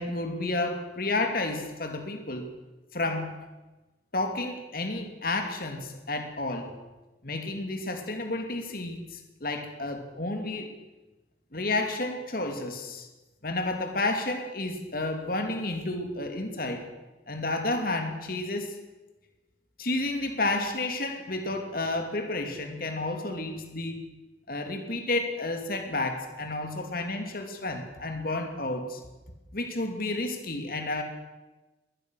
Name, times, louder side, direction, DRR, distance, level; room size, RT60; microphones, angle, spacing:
voice 1, 0.0-2.5 2.9-3.4 4.1-6.7 7.2-10.7 11.5-13.1 13.4-16.9 17.3-18.8 19.8-24.0 24.5-29.0 29.5-31.0, left 2 dB, 50° left, 5 dB, 2.8 m, -31 dB
22.0 x 19.0 x 6.5 m, 1.1 s
head